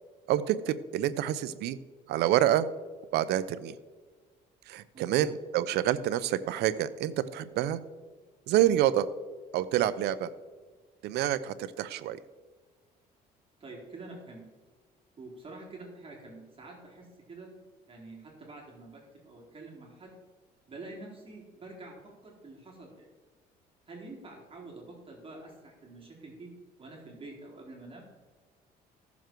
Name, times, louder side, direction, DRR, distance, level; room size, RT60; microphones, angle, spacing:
voice 1, 0.3-1.8 2.1-2.7 3.1-3.7 4.7-7.8 8.5-9.1 9.5-10.3 11.0-12.2, right 12 dB, 80° right, 15 dB, 0.7 m, -27 dB
voice 2, 4.9-5.3 13.6-14.4 15.2-17.5 17.9-20.1 20.7-22.0 22.2-23.1 23.9-26.5 26.8-28.0, right 2 dB, 30° right, -2 dB, 3.9 m, -47 dB
15.0 x 7.2 x 4.6 m, 1.4 s
cardioid pair, 110°, 17 cm